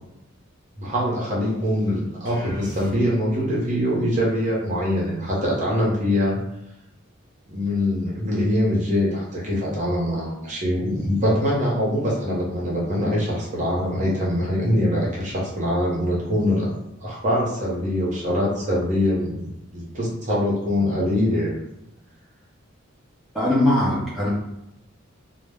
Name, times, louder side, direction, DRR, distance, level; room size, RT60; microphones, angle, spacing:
voice 1, 0.8-6.4 7.5-19.4 19.7-21.5, left 1 dB, 35° right, -5 dB, 0.7 m, -23 dB
sound 1, 2.2-3.4, right 1 dB, 50° left, 1.0 m, -40 dB
voice 2, 23.3-24.3, left 1 dB, ahead, -9 dB, 0.6 m, -20 dB
2.1 x 2.0 x 3.4 m, 0.84 s
head